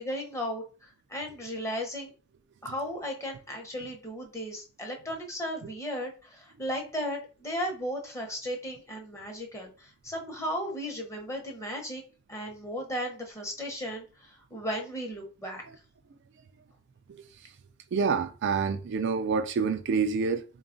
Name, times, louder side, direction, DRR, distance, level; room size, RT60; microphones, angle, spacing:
voice 1, 0.0-2.1 2.6-12.0 12.3-15.6, equal, 15° left, 0.8 m, -35 dB
voice 2, 17.9-20.4, right 5 dB, 60° right, 0.4 m, -27 dB
3.9 x 2.3 x 3.8 m
head